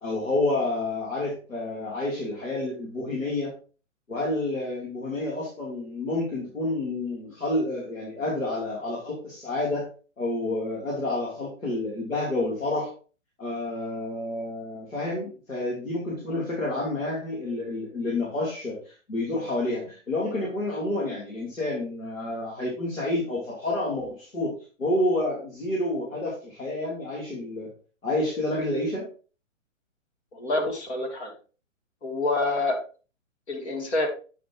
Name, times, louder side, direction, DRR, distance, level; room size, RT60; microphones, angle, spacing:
voice 1, 0.0-3.5 4.1-9.9 10.2-12.9 13.4-27.7 28.0-29.1, left 2 dB, 85° left, -5 dB, 3.4 m, -29 dB
voice 2, 30.3-31.3 32.0-32.8 33.5-34.1, left 2 dB, 55° left, 1 dB, 3.0 m, -27 dB
9.1 x 5.9 x 3.0 m, 0.37 s
figure-of-eight pair, 130°, 39 cm